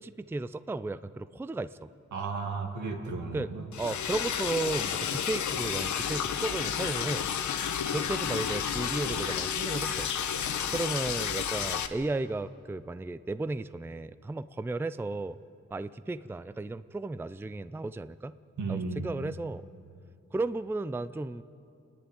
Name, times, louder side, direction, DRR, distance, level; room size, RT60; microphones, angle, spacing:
voice 1, 0.0-1.9 3.3-3.5 3.8-7.2 7.9-10.1 10.7-15.4 15.7-18.4 18.7-19.7 20.3-21.4, right 2 dB, 10° right, 14 dB, 0.4 m, -34 dB
voice 2, 2.1-3.6 18.6-19.1, right 4 dB, 85° right, 2 dB, 2.6 m, -34 dB
Liquid, 3.7-11.9, left 8 dB, 85° left, 1.1 m, -31 dB
28.5 x 10.5 x 9.3 m, 2.6 s
cardioid pair, 85°, 29 cm